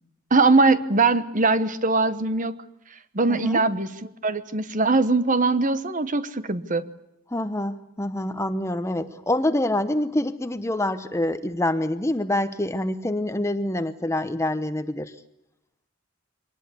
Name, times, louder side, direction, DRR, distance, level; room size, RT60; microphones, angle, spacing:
voice 1, 0.3-2.5 3.1-6.9, right 3 dB, 35° right, 13 dB, 1.1 m, -21 dB
voice 2, 3.3-3.6 7.3-15.1, left 1 dB, 15° left, 11 dB, 0.9 m, -26 dB
24.5 x 19.5 x 8.4 m, 0.83 s
head